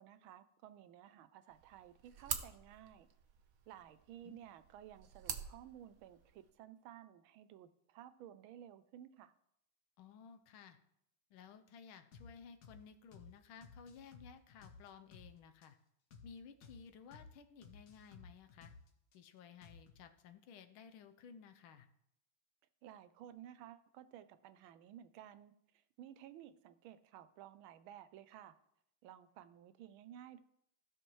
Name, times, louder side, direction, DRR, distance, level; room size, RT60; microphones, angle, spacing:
voice 1, 0.0-3.1 3.7-9.3 22.8-25.5 26.0-28.5 29.0-30.4, right 11 dB, 80° right, 13 dB, 1.4 m, -55 dB
sound 1, 1.5-6.5, right 7 dB, 60° right, 0.9 m, -47 dB
voice 2, 10.0-10.8 11.3-15.8 16.2-18.7 19.1-21.9, left 6 dB, 85° left, 9 dB, 1.5 m, -56 dB
sound 2, 12.1-12.3 12.6-12.8 13.1-13.3 13.6-15.3 15.6-15.7 16.1-16.3 16.6-16.8 17.1-17.3 17.6-19.2 19.6-20.0, left 4 dB, 65° left, 1.6 m, -56 dB
15.5 x 5.9 x 3.1 m, 0.75 s
omnidirectional pair, 2.3 m